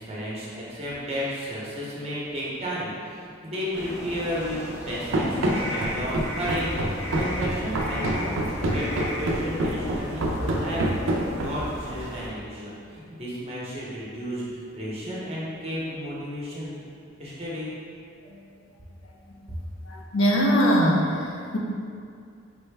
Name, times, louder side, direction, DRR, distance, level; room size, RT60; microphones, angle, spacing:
voice 1, 0.0-16.8 17.2-17.7, equal, 30° right, -7 dB, 0.8 m, -33 dB
sound 1, 3.7-12.3, equal, 15° left, 0.5 m, -36 dB
Run, 5.1-11.8, right 1 dB, 65° right, 0.4 m, -27 dB
voice 2, 19.8-21.6, equal, 60° left, -3 dB, 0.5 m, -22 dB
5.2 x 2.2 x 3.2 m, 2.3 s
head